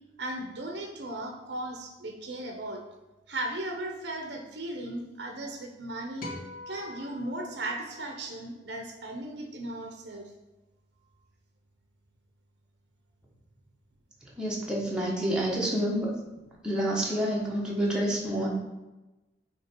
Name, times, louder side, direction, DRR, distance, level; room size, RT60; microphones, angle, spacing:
voice 1, 0.2-2.8 3.3-6.3 6.7-10.3, right 1 dB, 65° right, 2 dB, 0.8 m, -36 dB
sound 1, 6.2-8.7, left 2 dB, 55° left, 1.5 m, -44 dB
voice 2, 14.4-16.1 16.6-18.5, right 1 dB, 5° right, -5 dB, 1.1 m, -28 dB
8.3 x 3.2 x 4.5 m, 1.1 s
head